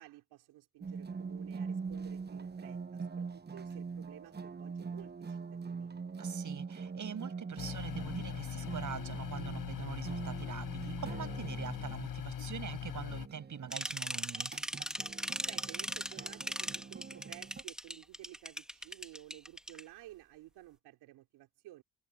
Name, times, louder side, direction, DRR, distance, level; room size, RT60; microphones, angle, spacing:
voice 1, 0.0-5.9 15.4-21.8, right 16 dB, 80° right, 3.7 m, -54 dB
sound 1, 0.8-17.6, right 5 dB, 25° right, 1.1 m, -43 dB
voice 2, 6.2-14.5, right 7 dB, 50° right, 6.9 m, -43 dB
sound 2, 7.6-13.3, left 8 dB, 55° left, 6.6 m, -41 dB
sound 3, 13.7-19.8, equal, ahead, 2.7 m, -38 dB
supercardioid pair, 75°, 39 cm